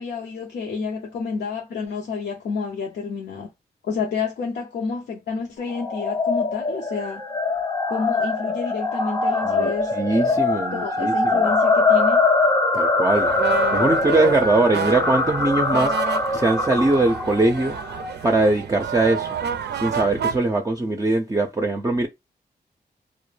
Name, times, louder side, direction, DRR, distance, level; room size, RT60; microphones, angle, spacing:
voice 1, 0.0-3.5 3.8-7.2 7.9-9.9 10.7-12.3, left 5 dB, 75° left, 0.5 m, -29 dB
sound 1, 5.7-18.1, left 3 dB, 20° left, 0.6 m, -22 dB
voice 2, 9.4-11.5 12.7-13.4 13.7-16.0 16.3-17.8 18.2-19.4 19.7-22.1, right 2 dB, 20° right, 0.5 m, -21 dB
sound 2, 13.1-20.4, right 7 dB, 75° right, 0.4 m, -30 dB
2.1 x 2.1 x 3.2 m
cardioid pair, 45°, 17 cm